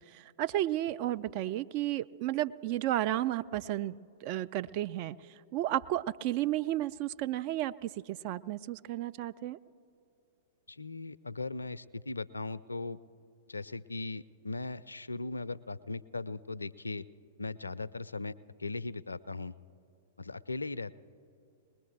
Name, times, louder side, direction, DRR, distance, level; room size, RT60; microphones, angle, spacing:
voice 1, 0.1-3.9 4.2-5.2 5.5-9.6, right 14 dB, 40° right, 13 dB, 0.3 m, -32 dB
voice 2, 10.7-13.0 13.5-17.1 17.4-18.3 18.6-19.5 20.2-20.9, left 3 dB, 80° left, 19 dB, 0.3 m, -38 dB
21.0 x 20.0 x 3.3 m, 2.6 s
figure-of-eight pair, 105°, 0 cm